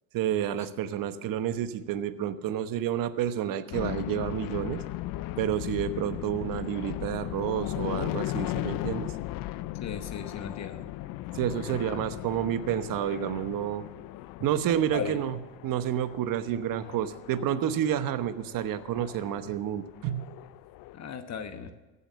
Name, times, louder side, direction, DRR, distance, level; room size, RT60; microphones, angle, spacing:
voice 1, 0.1-4.8 5.4-9.1 11.3-13.8 14.4-15.4 15.6-20.3, right 10 dB, 55° right, 12 dB, 1.1 m, -30 dB
sound 1, 3.7-20.9, left 15 dB, 55° left, 0.6 m, -37 dB
voice 2, 9.8-10.8 11.8-12.0 14.9-15.2 20.9-21.7, left 7 dB, 40° left, 8 dB, 1.1 m, -36 dB
15.0 x 7.1 x 7.3 m, 1.2 s
supercardioid pair, 85°, 40 cm